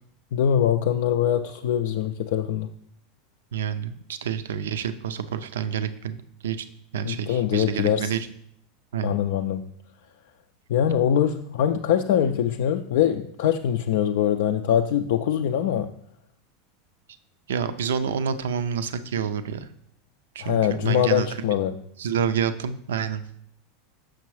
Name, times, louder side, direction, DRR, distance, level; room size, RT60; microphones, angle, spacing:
voice 1, 0.3-2.7 7.0-8.1 9.0-9.7 10.7-15.9 20.4-21.7, left 9 dB, 60° left, 5 dB, 0.3 m, -23 dB
voice 2, 3.5-6.7 6.9-8.3 8.9-9.2 17.5-19.7 20.3-21.3 22.0-23.2, right 7 dB, 70° right, 12 dB, 0.4 m, -28 dB
6.4 x 6.0 x 3.1 m, 0.68 s
figure-of-eight pair, 85°, 0 cm